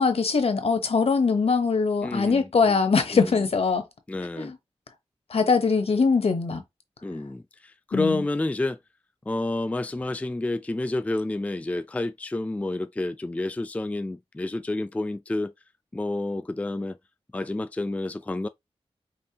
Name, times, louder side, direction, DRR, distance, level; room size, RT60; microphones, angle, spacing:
voice 1, 0.0-3.9 4.4-4.6 5.3-6.6 7.9-8.2, left 4 dB, 70° left, 1.0 m, -22 dB
voice 2, 2.0-2.8 3.1-3.3 4.1-4.5 7.0-8.8 9.3-15.5 15.9-17.0 17.3-18.5, left 2 dB, 15° left, 0.3 m, -29 dB
5.3 x 2.5 x 2.8 m
wide cardioid pair, 70°, 11 cm